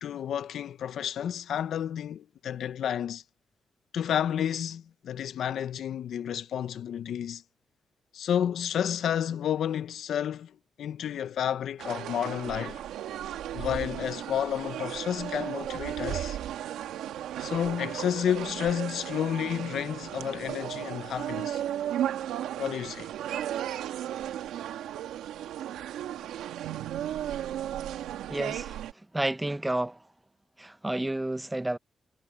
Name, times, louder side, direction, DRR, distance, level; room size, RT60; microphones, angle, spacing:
voice 1, 0.0-3.2 3.9-7.4 8.1-12.8 13.5-16.4 17.4-21.6 22.6-23.1, left 9 dB, 80° left, 1.0 m, -31 dB
sound 1, 11.8-28.9, right 11 dB, 90° right, 1.7 m, -35 dB
voice 2, 28.3-28.8 29.1-29.9 30.6-31.8, right 1 dB, 15° right, 0.9 m, -30 dB
supercardioid pair, 50°, 0 cm